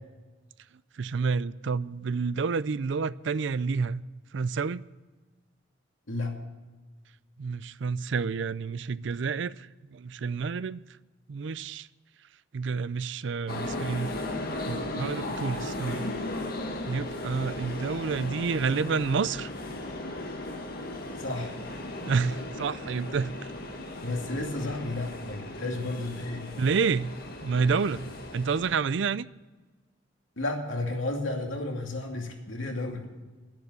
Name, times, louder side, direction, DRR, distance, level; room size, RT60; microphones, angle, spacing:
voice 1, 1.0-4.0 4.3-4.8 7.4-10.8 11.3-11.9 12.5-14.1 14.6-16.1 16.9-19.5 22.1-23.3 26.6-27.1 27.4-28.1 28.3-29.3, right 5 dB, 65° right, 0.4 m, -29 dB
sound 1, 13.5-28.7, left 2 dB, 50° left, 1.7 m, -36 dB
voice 2, 21.2-21.5 24.0-26.4 30.4-33.1, left 2 dB, 85° left, 2.5 m, -32 dB
11.0 x 10.5 x 8.0 m
head